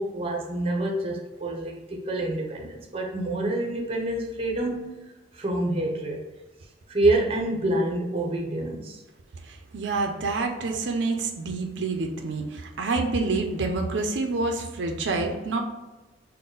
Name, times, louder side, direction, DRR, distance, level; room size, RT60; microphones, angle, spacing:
voice 1, 0.0-5.0 5.3-6.2 6.9-9.0, right 1 dB, 30° right, 1 dB, 0.6 m, -27 dB
voice 2, 9.7-15.6, right 3 dB, 85° right, 3 dB, 0.5 m, -27 dB
3.8 x 2.1 x 3.8 m, 1.1 s
head